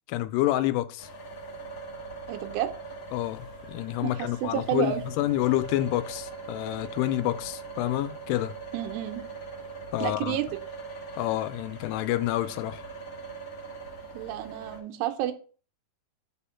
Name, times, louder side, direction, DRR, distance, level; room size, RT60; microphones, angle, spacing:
voice 1, 0.1-1.1 3.1-8.6 9.9-10.4 11.2-12.8, left 15 dB, 90° left, 2.7 m, -28 dB
sound 1, 1.0-14.8, right 4 dB, 55° left, 1.9 m, -41 dB
voice 2, 2.3-2.7 4.0-5.0 8.7-9.2 10.0-10.5 14.1-15.3, right 12 dB, 90° right, 2.8 m, -30 dB
5.4 x 4.3 x 5.6 m
omnidirectional pair, 4.7 m